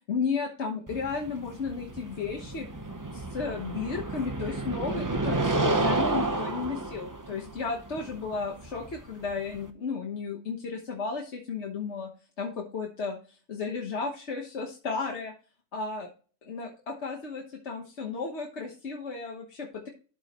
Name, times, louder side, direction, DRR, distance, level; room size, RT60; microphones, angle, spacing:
voice 1, 0.1-2.6 3.1-12.1 12.4-15.3 15.7-16.1 16.5-19.9, left 5 dB, 65° left, 1 dB, 1.5 m, -34 dB
sound 1, 0.9-9.7, right 2 dB, 20° right, 0.7 m, -31 dB
12.5 x 4.9 x 3.0 m, 0.37 s
omnidirectional pair, 1.3 m